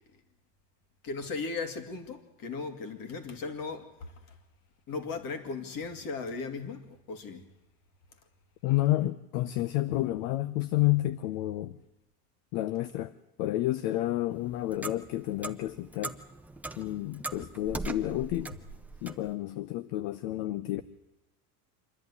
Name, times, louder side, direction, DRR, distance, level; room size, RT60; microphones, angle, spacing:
voice 1, 1.0-4.4 4.9-7.5 19.1-19.2, left 4 dB, 45° left, 2.6 m, -37 dB
voice 2, 8.6-11.8 12.5-13.1 13.4-16.2 16.8-18.5 19.0-20.8, left 16 dB, 65° left, 0.9 m, -30 dB
Clock, 14.3-19.3, right 2 dB, 5° right, 0.7 m, -40 dB
26.5 x 10.5 x 9.8 m
supercardioid pair, 130°, 47 cm